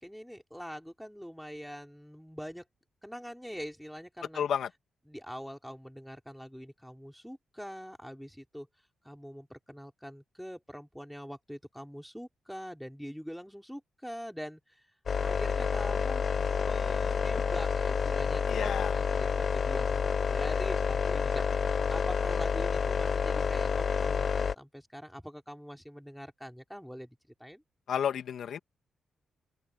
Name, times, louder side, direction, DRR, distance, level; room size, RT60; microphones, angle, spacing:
voice 1, 0.0-2.6 3.0-4.4 5.1-8.7 9.0-14.8 15.2-27.6, equal, ahead, 4.3 m, -44 dB
voice 2, 4.3-4.7 18.5-18.9 27.9-28.6, left 8 dB, 75° left, 2.4 m, -31 dB
sound 1, 15.1-24.5, left 6 dB, 50° left, 0.5 m, -29 dB
open air
cardioid pair, 85°, 0 cm